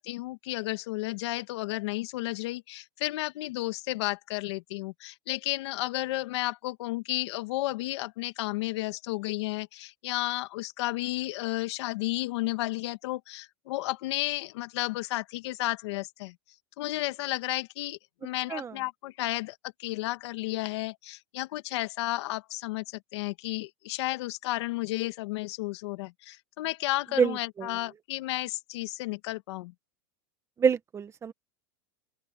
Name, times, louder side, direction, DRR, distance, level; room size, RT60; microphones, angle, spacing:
voice 1, 0.0-16.4 16.8-29.7, left 18 dB, 70° left, 1.8 m, -32 dB
voice 2, 27.2-27.7 30.6-31.3, right 6 dB, 20° right, 1.3 m, -26 dB
open air
supercardioid pair, 145°, 15 cm